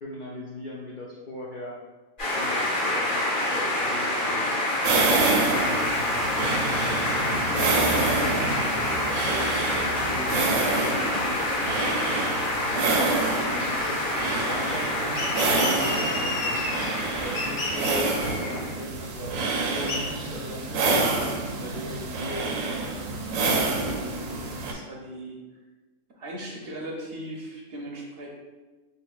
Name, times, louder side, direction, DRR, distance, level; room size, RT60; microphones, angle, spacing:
voice 1, 0.0-1.8 2.4-4.7 5.1-6.7 7.3-8.5 9.1-11.9 12.7-16.6 17.2-20.9 21.5-22.6, left 1 dB, 65° left, -5 dB, 0.5 m, -39 dB
sound 1, 2.2-18.8, left 1 dB, 40° left, 1.3 m, -27 dB
sound 2, 4.8-24.7, right 3 dB, 90° right, 1.0 m, -28 dB
sound 3, 15.1-17.0 17.3-18.5 19.9-20.0, left 1 dB, 80° left, 1.2 m, -31 dB
voice 2, 23.7-24.3 24.6-25.4 26.2-28.3, right 1 dB, 60° right, -1 dB, 0.7 m, -38 dB
4.0 x 3.3 x 2.3 m, 1.2 s
omnidirectional pair, 1.3 m